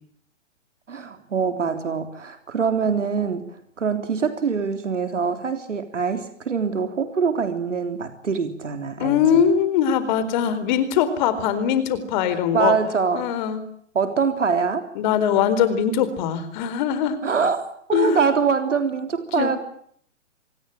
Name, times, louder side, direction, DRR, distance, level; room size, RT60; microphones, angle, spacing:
voice 1, 0.9-3.5 3.8-9.4 12.3-13.2 13.9-14.9 17.2-17.6 17.9-19.6, right 5 dB, 75° right, 7 dB, 3.5 m, -24 dB
voice 2, 9.0-12.8 13.1-13.6 15.0-17.2 17.9-18.2 19.4-19.6, left 8 dB, 40° left, 13 dB, 4.2 m, -21 dB
26.5 x 20.0 x 9.0 m, 0.65 s
hypercardioid pair, 130°, 37 cm